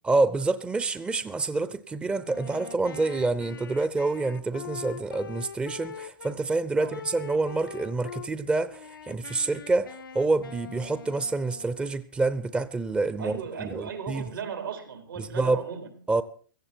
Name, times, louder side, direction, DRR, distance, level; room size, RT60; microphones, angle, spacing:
voice 1, 0.0-14.2 15.2-15.6 16.1-16.2, right 3 dB, 10° right, 0.7 m, -27 dB
Wind instrument woodwind instrument, 2.2-6.4 6.9-8.3 8.7-11.9, left 7 dB, 85° left, 0.9 m, -43 dB
voice 2, 13.2-16.0, right 6 dB, 80° right, 4.1 m, -36 dB
17.0 x 15.0 x 4.5 m
hypercardioid pair, 115°, 11 cm